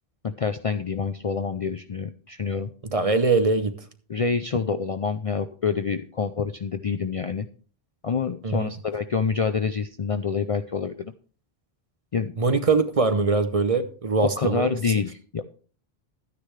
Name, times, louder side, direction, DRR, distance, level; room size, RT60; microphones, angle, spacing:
voice 1, 0.2-2.7 4.1-7.5 8.0-11.1 12.1-12.3 14.2-15.4, left 5 dB, 45° left, 0.5 m, -27 dB
voice 2, 2.9-3.9 8.4-8.7 12.4-14.7, right 3 dB, 40° right, 0.8 m, -22 dB
12.0 x 9.6 x 3.3 m
omnidirectional pair, 1.0 m